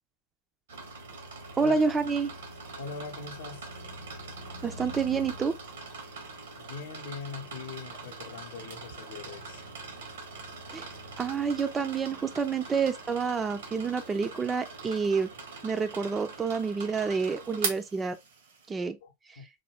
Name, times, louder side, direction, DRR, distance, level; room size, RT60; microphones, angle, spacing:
sound 1, 0.7-18.7, right 4 dB, 60° right, 0.8 m, -42 dB
voice 1, 1.6-2.3 4.6-5.6 10.7-10.9 11.2-15.3 15.6-18.2 18.7-19.0, right 5 dB, 15° right, 0.4 m, -28 dB
voice 2, 2.8-3.7 6.6-9.6 19.0-19.4, left 4 dB, 55° left, 0.6 m, -41 dB
3.8 x 2.3 x 3.3 m
figure-of-eight pair, 90°, 0 cm